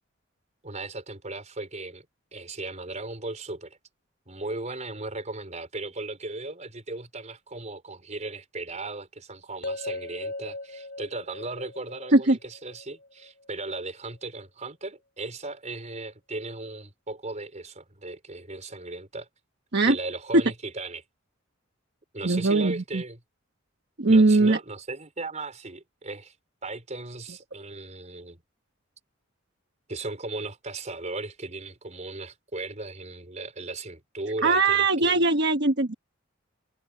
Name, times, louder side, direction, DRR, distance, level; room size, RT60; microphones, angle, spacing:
voice 1, 0.6-2.1 2.3-3.8 4.3-19.3 19.9-21.0 22.1-23.2 24.1-26.3 26.6-28.4 29.9-35.1, right 2 dB, 35° right, 4.7 m, -37 dB
sound 1, 9.6-13.7, left 2 dB, 55° left, 2.6 m, -38 dB
voice 2, 22.2-23.0 24.0-24.6 34.4-35.9, right 3 dB, 60° right, 1.2 m, -20 dB
head